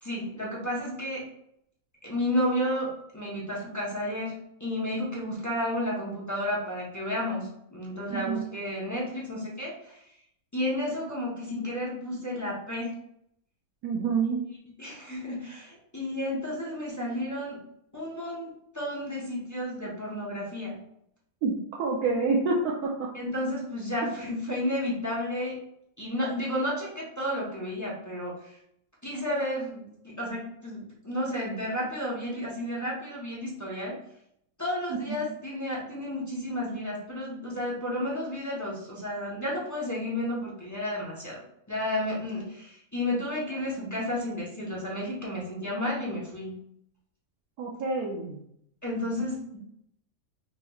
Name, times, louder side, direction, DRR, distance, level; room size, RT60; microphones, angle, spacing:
voice 1, 0.0-1.3 2.0-10.0 10.5-12.9 14.8-17.6 17.9-20.8 22.0-22.2 23.1-25.6 26.0-28.5 29.0-34.0 34.6-41.4 41.7-46.6 48.8-49.6, left 1 dB, 20° left, -5 dB, 0.6 m, -32 dB
voice 2, 8.1-8.5 13.8-14.4 21.4-23.1 24.0-24.1 35.1-35.2 43.5-44.1 47.6-48.4, right 4 dB, 85° right, -3 dB, 1.1 m, -28 dB
4.3 x 2.9 x 2.3 m, 0.74 s
omnidirectional pair, 1.6 m